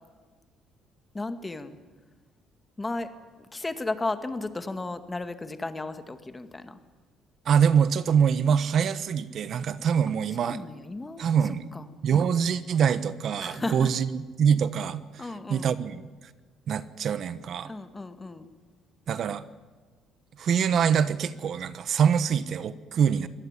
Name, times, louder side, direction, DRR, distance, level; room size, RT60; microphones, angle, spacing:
voice 1, 1.1-1.8 2.8-3.1 3.5-6.8 10.4-12.3 13.4-13.9 15.2-15.7 17.6-18.5, left 2 dB, 20° left, 9 dB, 2.0 m, -34 dB
voice 2, 7.5-10.6 11.2-11.6 12.0-14.1 14.4-15.0 15.5-16.0 16.7-17.7 19.1-19.4 20.4-23.3, right 7 dB, 55° right, 14 dB, 1.1 m, -24 dB
23.5 x 18.0 x 9.9 m, 1.4 s
cardioid pair, 100°, 0 cm